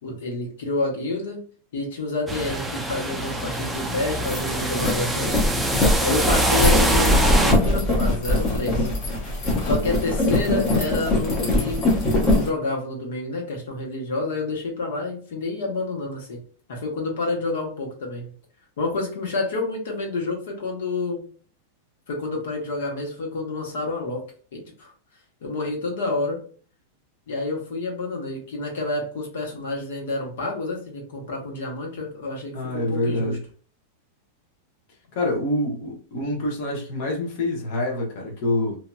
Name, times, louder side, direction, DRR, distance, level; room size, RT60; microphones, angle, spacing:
voice 1, 0.0-1.4 1.7-5.7 6.0-8.9 9.6-16.4 16.7-18.3 18.8-21.2 22.1-24.2 24.5-24.9 25.4-26.4 27.3-33.4, left 2 dB, 75° left, 1.4 m, -28 dB
sound 1, 2.3-7.5, right 1 dB, 5° right, 0.4 m, -24 dB
sound 2, 3.6-3.7 4.1-12.5, left 1 dB, 25° left, 0.9 m, -22 dB
voice 2, 32.5-33.4 35.1-38.8, left 1 dB, 50° left, 1.1 m, -26 dB
2.8 x 2.7 x 2.3 m
supercardioid pair, 160°, 0 cm